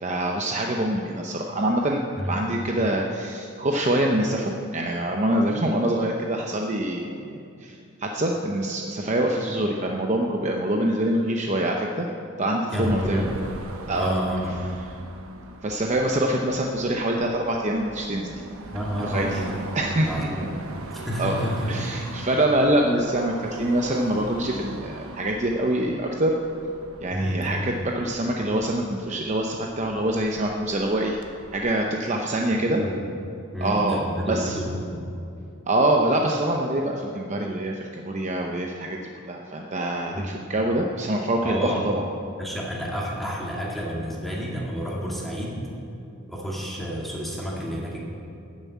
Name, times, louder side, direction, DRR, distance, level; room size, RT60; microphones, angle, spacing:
voice 1, 0.0-2.0 2.3-12.1 12.4-13.4 13.9-14.2 15.6-18.3 19.0-19.4 19.7-20.3 21.2-26.3 27.0-31.2 31.5-32.8 33.6-34.0 34.3-34.6 35.7-39.0 39.2-42.0, right 1 dB, 30° right, 1 dB, 0.7 m, -25 dB
voice 2, 12.7-13.3 13.9-14.6 18.7-19.6 20.0-20.5 20.9-21.7 27.1-27.5 32.5-33.0 33.5-35.1 40.1-40.3 41.4-41.8 42.4-45.6 46.3-48.0, equal, ahead, -4 dB, 2.2 m, -30 dB
Car passing by / Traffic noise roadway noise / Engine, 12.9-31.6, right 2 dB, 70° right, 1.0 m, -40 dB
13.0 x 7.2 x 8.5 m, 2.6 s
head